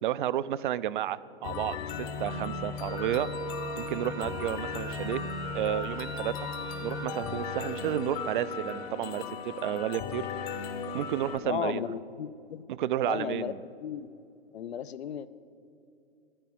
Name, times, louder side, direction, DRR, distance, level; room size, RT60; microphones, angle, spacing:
voice 1, 0.0-3.3 3.8-5.2 5.5-6.5 6.8-10.3 10.9-11.9 12.7-13.6, right 12 dB, 50° right, 17 dB, 0.5 m, -31 dB
sound 1, 1.4-11.4, left 6 dB, 35° left, 0.9 m, -37 dB
Wind instrument woodwind instrument, 2.8-8.9, right 6 dB, 10° right, 0.7 m, -41 dB
voice 2, 11.4-12.6 13.0-13.5 13.8-14.1 14.5-15.3, left 9 dB, 75° left, 15 dB, 0.7 m, -34 dB
10.0 x 9.9 x 9.2 m, 2.6 s
hypercardioid pair, 130°, 32 cm